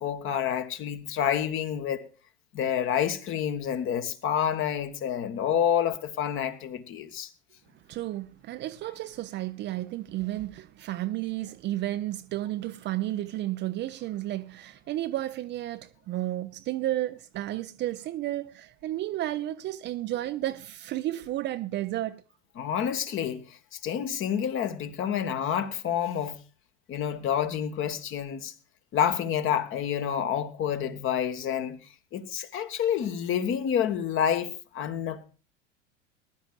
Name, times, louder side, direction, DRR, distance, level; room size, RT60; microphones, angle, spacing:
voice 1, 0.0-2.1 2.5-7.3 22.6-26.4 26.9-28.5 28.9-31.8 32.1-35.2, left 9 dB, 35° left, 1.4 m, -28 dB
voice 2, 7.9-22.2, right 14 dB, 30° right, 0.6 m, -32 dB
20.5 x 11.5 x 2.4 m
figure-of-eight pair, 80°, 36 cm